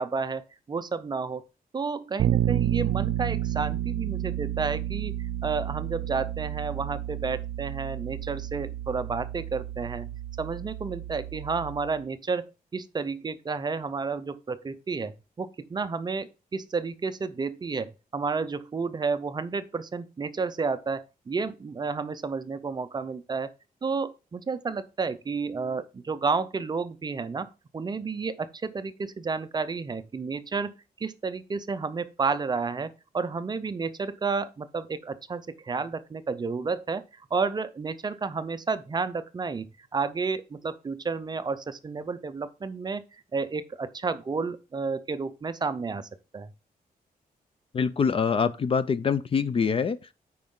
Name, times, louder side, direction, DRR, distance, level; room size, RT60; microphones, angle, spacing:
voice 1, 0.0-1.4 1.7-5.2 5.4-23.5 23.8-30.7 31.0-37.0 37.3-39.7 39.9-43.0 43.3-46.5, right 4 dB, 25° right, 0.5 m, -31 dB
Bass guitar, 2.2-12.0, right 13 dB, 85° right, 0.4 m, -31 dB
voice 2, 47.7-50.0, left 6 dB, 35° left, 0.4 m, -24 dB
9.3 x 4.7 x 3.7 m
wide cardioid pair, 165°, 16 cm